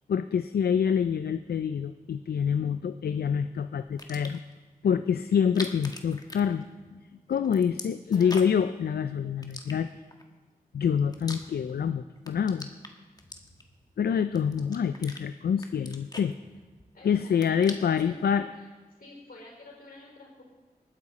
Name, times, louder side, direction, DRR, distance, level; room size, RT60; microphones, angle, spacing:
voice 1, 0.1-4.4 4.8-6.6 6.9-7.0 7.3-9.9 10.7-12.7 14.0-16.3 17.0-18.4, left 7 dB, 85° left, 11 dB, 0.4 m, -26 dB
sound 1, 3.9-4.5 5.4-7.0 7.3-8.7 9.4-10.2 10.8-11.9 12.2-13.8 14.3-15.2 15.6-16.9 17.2-18.1, left 2 dB, 25° left, 1.5 m, -43 dB
voice 2, 8.0-8.6 16.9-18.7 19.0-20.4, left 2 dB, 70° left, -1 dB, 4.8 m, -49 dB
19.5 x 9.8 x 4.1 m, 1.3 s
wide cardioid pair, 65°, 16 cm